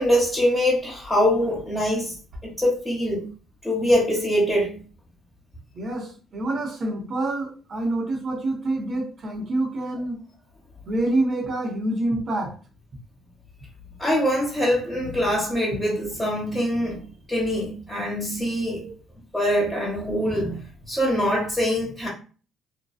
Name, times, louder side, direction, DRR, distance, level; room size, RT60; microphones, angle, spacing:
voice 1, 0.0-2.1 2.4-3.2 3.6-4.8 14.0-17.0 17.3-18.8 19.3-20.6 20.9-22.1, equal, 10° left, 1.1 m, -23 dB
voice 2, 5.7-10.2 10.9-12.5 18.8-18.9, right 2 dB, 50° right, 0.8 m, -27 dB
2.7 x 2.2 x 2.3 m
supercardioid pair, 75°, 0 cm